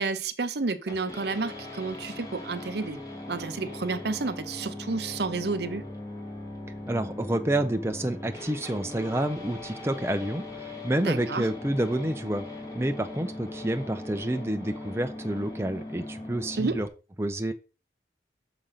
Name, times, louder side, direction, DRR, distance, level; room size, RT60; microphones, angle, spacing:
voice 1, 0.0-3.0 3.3-5.8 11.0-11.5 16.6-16.8, right 3 dB, 65° right, 0.7 m, -30 dB
sound 1, 0.9-16.9, left 2 dB, 20° left, 2.3 m, -40 dB
voice 2, 6.9-12.5 12.7-16.9 17.2-17.5, right 1 dB, 15° right, 0.6 m, -29 dB
6.5 x 5.1 x 5.7 m
head